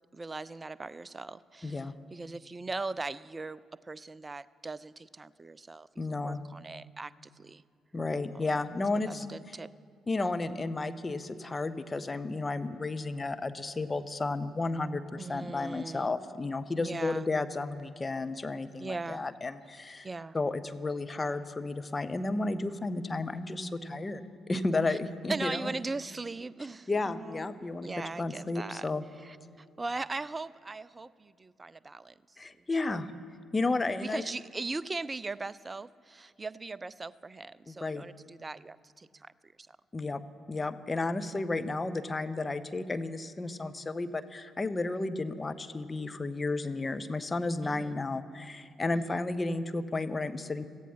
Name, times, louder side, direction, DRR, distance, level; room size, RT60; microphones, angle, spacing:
voice 1, 0.1-7.6 9.1-9.7 15.2-16.1 16.8-17.3 18.8-19.3 20.0-20.4 24.9-25.0 25.3-27.5 27.8-28.9 29.2-32.1 34.0-39.3 39.6-39.8 47.6-48.0 48.9-49.2, right 3 dB, 25° right, 20 dB, 0.4 m, -39 dB
voice 2, 1.6-1.9 6.0-6.4 7.9-9.3 10.1-20.1 20.3-24.2 24.5-25.7 26.9-29.0 32.4-33.1 33.5-34.2 37.7-38.0 39.9-40.2 40.5-50.6, left 3 dB, 25° left, 10 dB, 0.8 m, -32 dB
16.5 x 14.5 x 5.8 m, 2.2 s
figure-of-eight pair, 40°, 0 cm